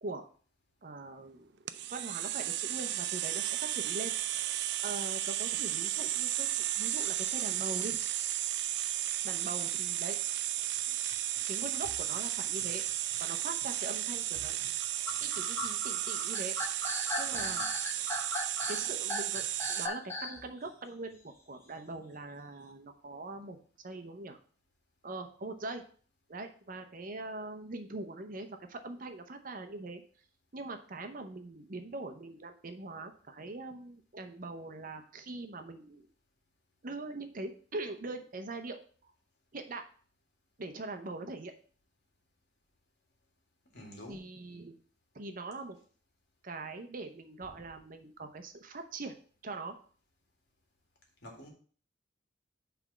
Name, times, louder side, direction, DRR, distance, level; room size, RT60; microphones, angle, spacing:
voice 1, 0.8-1.5 1.9-4.1 4.8-6.5 6.8-8.0 9.2-10.2 11.5-12.8 13.2-14.6 15.2-16.5 17.2-17.6 18.7-19.4 19.7-23.6 23.8-24.4 25.0-25.8 26.3-30.0 30.5-36.1 36.8-39.1 39.5-39.8 40.6-41.5 44.1-44.8 45.1-45.8 46.4-49.1 49.4-49.8, right 2 dB, 50° right, 7 dB, 0.7 m, -42 dB
sound 1, 1.7-19.9, right 13 dB, 65° right, 0.4 m, -34 dB
sound 2, 10.8-20.5, left 2 dB, 15° left, 1.1 m, -40 dB
voice 2, 17.3-17.7 43.7-44.2 51.2-51.5, equal, 60° left, 1 dB, 1.9 m, -48 dB
6.1 x 3.4 x 6.0 m, 0.43 s
head